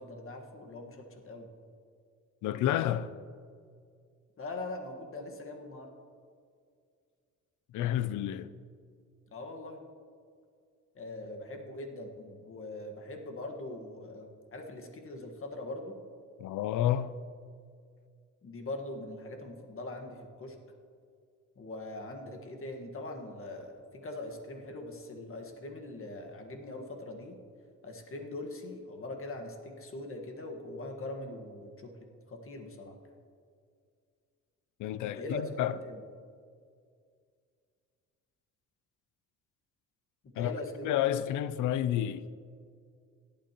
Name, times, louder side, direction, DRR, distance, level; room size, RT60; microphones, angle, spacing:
voice 1, 0.0-1.5 4.4-5.9 9.3-9.8 10.9-15.9 18.4-20.5 21.6-27.4 27.8-32.9 35.0-36.0 40.3-41.0, left 2 dB, 45° left, 1.6 m, -42 dB
voice 2, 2.4-3.1 7.7-8.5 16.4-17.2 34.8-35.8 40.4-40.5 40.8-42.3, left 11 dB, 80° left, 0.5 m, -30 dB
17.5 x 8.7 x 3.0 m
cardioid pair, 90°, 30 cm